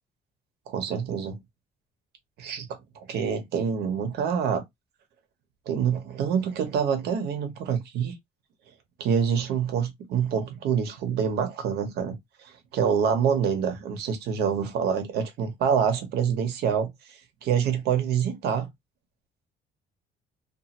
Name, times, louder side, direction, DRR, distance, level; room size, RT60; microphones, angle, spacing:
voice 1, 0.7-1.4 2.4-2.8 3.1-4.6 5.7-8.1 9.0-16.9 17.4-18.7, right 7 dB, 75° right, 0.9 m, -26 dB
2.9 x 2.5 x 2.5 m
cardioid pair, 110°, 17 cm